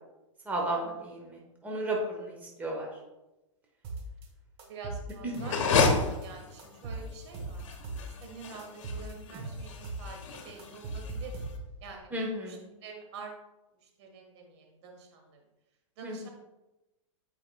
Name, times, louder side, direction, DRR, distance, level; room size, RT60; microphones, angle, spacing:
voice 1, 0.4-2.9 5.2-5.4 12.1-12.7 16.0-16.3, right 1 dB, 10° right, -2 dB, 1.1 m, -34 dB
sound 1, 3.8-4.3 4.6-6.3 6.6-8.3 8.6-10.1 10.3-11.9, right 2 dB, 35° right, 1.2 m, -39 dB
voice 2, 4.7-7.6 8.2-11.4 11.8-12.1 12.4-13.3 13.8-15.4 16.0-16.3, right 4 dB, 60° right, 2 dB, 1.5 m, -47 dB
sound 2, 5.4-11.5, left 4 dB, 70° left, 1.0 m, -31 dB
8.6 x 4.8 x 2.3 m, 1.0 s
hypercardioid pair, 125°, 17 cm